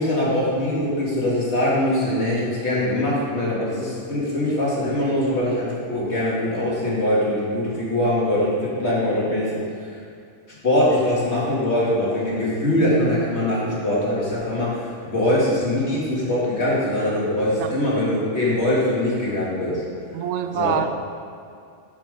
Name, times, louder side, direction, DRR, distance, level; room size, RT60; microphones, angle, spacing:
voice 1, 0.0-9.6 9.9-10.0 10.6-19.8 20.5-20.8, left 1 dB, 65° left, -6 dB, 2.5 m, -22 dB
voice 2, 20.1-20.9, right 8 dB, 75° right, 8 dB, 0.9 m, -25 dB
7.4 x 7.4 x 5.2 m, 2.5 s
omnidirectional pair, 1.2 m